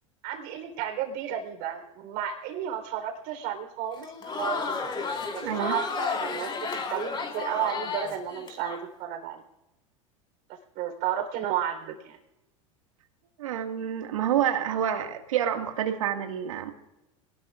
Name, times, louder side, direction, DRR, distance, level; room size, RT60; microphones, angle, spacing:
voice 1, 0.2-4.7 5.3-6.5 6.9-9.4 10.8-12.2, right 10 dB, 60° right, 4 dB, 3.9 m, -32 dB
Crowd, 3.9-8.8, left 4 dB, 30° left, 4.4 m, -32 dB
voice 2, 5.4-5.7 13.4-16.7, right 9 dB, 80° right, 6 dB, 1.9 m, -28 dB
27.0 x 19.5 x 2.5 m, 0.96 s
hypercardioid pair, 90°, 17 cm